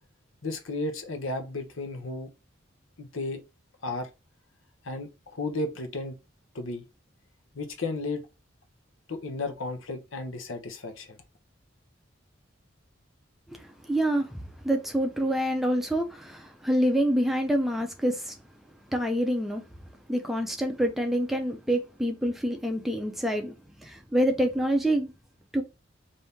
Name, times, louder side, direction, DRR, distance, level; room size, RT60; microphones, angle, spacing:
voice 1, 0.4-2.3 3.0-3.4 3.8-4.1 4.8-6.2 6.5-6.9 7.5-8.2 9.1-11.2, left 2 dB, 85° left, 0.8 m, -33 dB
voice 2, 13.5-14.4 14.6-18.3 18.9-19.6 20.1-23.5 23.8-25.1 25.5-25.6, equal, ahead, 0.5 m, -26 dB
4.1 x 2.7 x 3.5 m
head